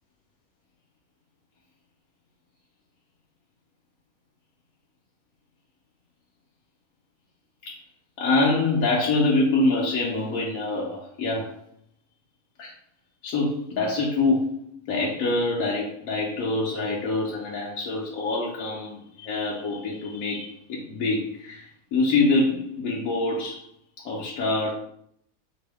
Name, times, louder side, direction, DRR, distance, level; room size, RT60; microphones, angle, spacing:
voice 1, 8.2-11.5 12.6-12.7 13.2-23.7 24.0-24.7, left 2 dB, 70° left, -4 dB, 1.0 m, -25 dB
4.4 x 2.0 x 3.4 m, 0.69 s
omnidirectional pair, 1.6 m